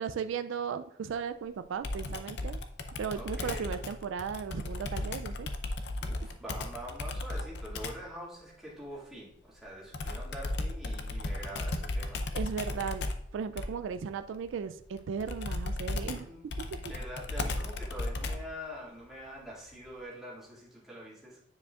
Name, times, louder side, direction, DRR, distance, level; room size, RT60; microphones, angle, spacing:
voice 1, 0.0-2.6 3.0-5.5 12.3-13.0 13.3-16.3 16.6-16.9, right 6 dB, 75° right, 10 dB, 0.3 m, -36 dB
Computer keyboard, 1.8-8.1 9.9-18.6, left 2 dB, 60° left, 0.6 m, -36 dB
voice 2, 3.1-3.7 6.0-12.3 12.7-12.8 16.0-21.4, equal, ahead, -7 dB, 2.0 m, -45 dB
9.4 x 4.9 x 2.4 m, 0.80 s
head